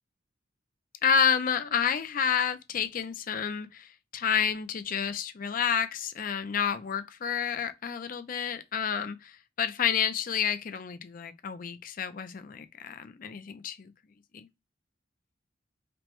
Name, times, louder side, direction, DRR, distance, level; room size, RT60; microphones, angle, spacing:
voice 1, 1.0-13.9 14.3-14.5, left 7 dB, 50° left, 0.5 m, -29 dB
5.1 x 2.1 x 3.0 m
head